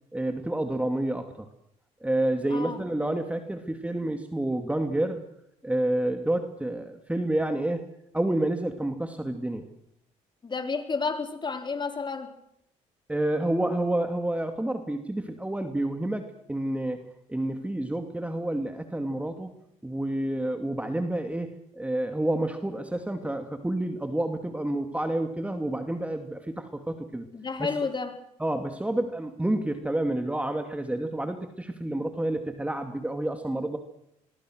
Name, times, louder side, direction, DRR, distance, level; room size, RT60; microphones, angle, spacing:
voice 1, 0.1-1.5 2.0-5.2 5.6-7.9 8.1-9.7 13.1-19.5 19.8-27.3 27.6-27.7 28.4-33.8, right 1 dB, 10° right, 6 dB, 2.5 m, -29 dB
voice 2, 2.5-2.9 10.4-12.3 27.3-28.1, left 4 dB, 30° left, 6 dB, 4.1 m, -31 dB
26.0 x 22.5 x 6.4 m, 0.76 s
supercardioid pair, 75°, 14 cm